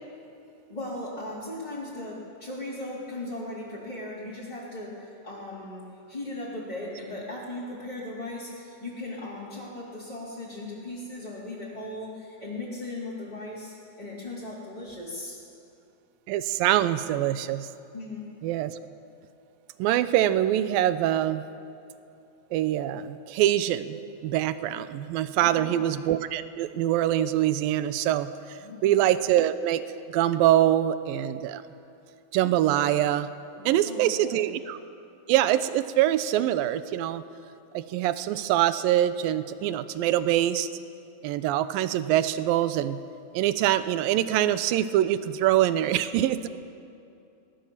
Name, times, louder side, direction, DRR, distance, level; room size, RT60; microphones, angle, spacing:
voice 1, 0.7-15.4 17.9-18.2 25.4-25.8 28.6-28.9 33.6-34.5, left 2 dB, 10° left, -9 dB, 3.6 m, -38 dB
voice 2, 16.3-17.7 18.4-18.7 19.8-21.4 22.5-24.0 24.2-29.8 30.1-31.6 32.3-33.3 33.7-34.8 35.3-37.2 37.7-40.7 41.2-43.0 43.3-46.5, right 12 dB, 80° right, 13 dB, 2.5 m, -24 dB
25.5 x 20.0 x 7.4 m, 2.6 s
omnidirectional pair, 4.2 m